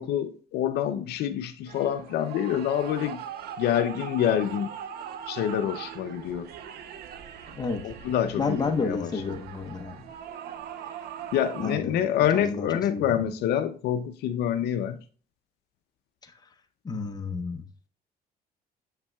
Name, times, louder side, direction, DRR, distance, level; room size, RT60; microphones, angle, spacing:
voice 1, 0.0-3.2 3.6-4.7 5.3-6.5 7.8-9.1 11.3-15.0, left 10 dB, 75° left, 0.5 m, -27 dB
sound 1, 1.7-11.8, right 8 dB, 70° right, 0.7 m, -40 dB
voice 2, 8.4-10.1 11.6-12.0 12.3-13.2 16.2-16.3 16.8-17.6, left 4 dB, 25° left, 0.8 m, -31 dB
7.3 x 5.7 x 2.3 m
cardioid pair, 110°, 17 cm